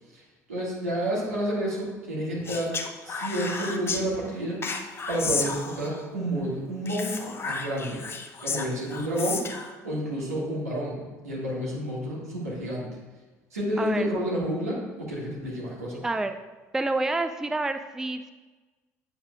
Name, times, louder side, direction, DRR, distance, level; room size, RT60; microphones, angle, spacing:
voice 1, 0.5-2.8 3.0-4.6 5.1-8.0 8.4-9.5 9.8-12.9 13.5-16.0, equal, 80° right, -6 dB, 1.9 m, -30 dB
Speech, 2.4-4.0 4.6-6.0 6.8-9.7, left 4 dB, 30° left, 0.7 m, -32 dB
voice 2, 13.8-14.1 16.0-16.3 16.7-18.3, right 2 dB, 5° right, 9 dB, 0.3 m, -28 dB
8.6 x 7.1 x 2.4 m, 1.2 s
figure-of-eight pair, 55°, 8 cm